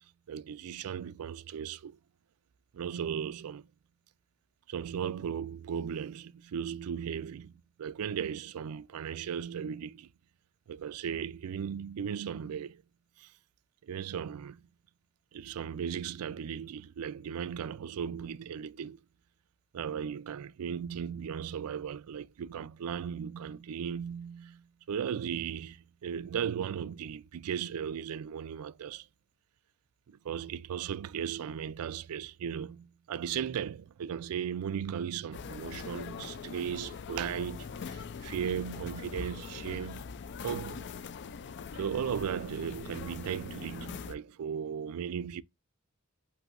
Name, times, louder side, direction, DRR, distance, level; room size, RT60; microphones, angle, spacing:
voice 1, 0.3-2.0 2.7-3.6 4.7-7.5 7.8-10.1 10.7-12.8 13.2-13.3 13.8-14.6 15.3-19.0 19.7-29.1 30.1-40.1 40.4-40.9 41.7-45.4, right 8 dB, 70° right, 0.4 m, -36 dB
sound 1, 35.3-44.2, left 5 dB, 50° left, 0.4 m, -42 dB
7.9 x 2.7 x 2.5 m
head